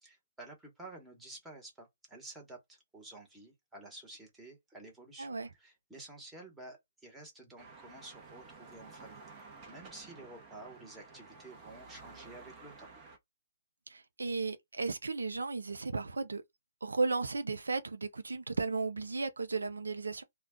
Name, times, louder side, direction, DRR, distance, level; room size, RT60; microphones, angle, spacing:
voice 1, 0.0-12.9, right 2 dB, 5° right, 1.1 m, -51 dB
voice 2, 5.2-5.5 13.9-16.4 16.8-20.2, right 3 dB, 90° right, 0.5 m, -34 dB
sound 1, 7.6-13.2, right 4 dB, 30° right, 0.8 m, -53 dB
2.3 x 2.2 x 3.6 m
hypercardioid pair, 145°, 0 cm